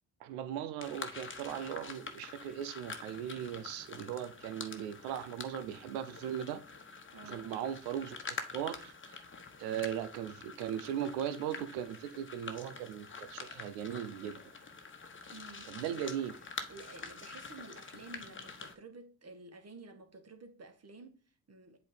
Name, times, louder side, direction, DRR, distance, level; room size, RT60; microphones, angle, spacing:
voice 1, 0.2-6.6 7.2-8.2 8.5-9.2 9.6-14.4 15.7-16.4, right 10 dB, 85° right, 0.7 m, -38 dB
sound 1, 0.8-18.7, left 4 dB, 25° left, 1.2 m, -46 dB
voice 2, 7.1-7.6 15.3-16.0 16.7-21.8, right 3 dB, 35° right, 1.5 m, -52 dB
7.7 x 3.0 x 5.1 m
hypercardioid pair, 50°, 44 cm